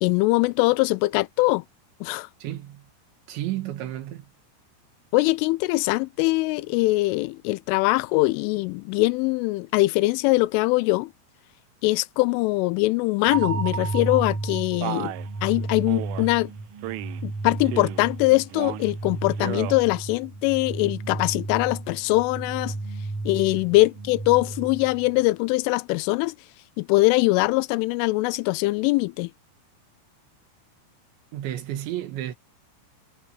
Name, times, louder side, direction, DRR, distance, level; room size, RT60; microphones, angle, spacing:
voice 1, 0.0-1.6 2.0-2.3 5.1-11.1 11.8-15.1 15.4-16.5 17.2-22.7 23.3-26.4 26.8-29.3, left 22 dB, 85° left, 3.1 m, -22 dB
voice 2, 2.4-2.8 3.3-4.3 23.5-23.6 31.3-32.3, right 13 dB, 70° right, 3.8 m, -32 dB
sound 1, 13.3-25.2, right 3 dB, 35° right, 3.0 m, -33 dB
Male speech man speaking, 14.8-15.3 15.9-16.3 16.8-17.2 17.6-18.1 18.5-18.9 19.3-19.8, right 18 dB, 90° right, 3.4 m, -33 dB
omnidirectional pair, 5.6 m